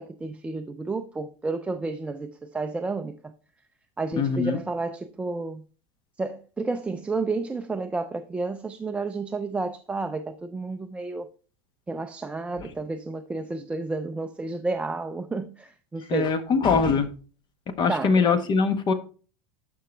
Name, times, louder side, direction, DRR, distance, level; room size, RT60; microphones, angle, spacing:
voice 1, 0.0-3.3 4.0-5.6 6.2-11.3 11.9-16.4 17.9-18.3, right 3 dB, 5° right, 0.4 m, -31 dB
voice 2, 4.2-4.6 16.1-17.1 17.8-18.9, left 5 dB, 25° left, 1.1 m, -22 dB
12.0 x 5.5 x 3.2 m
supercardioid pair, 150°, 16 cm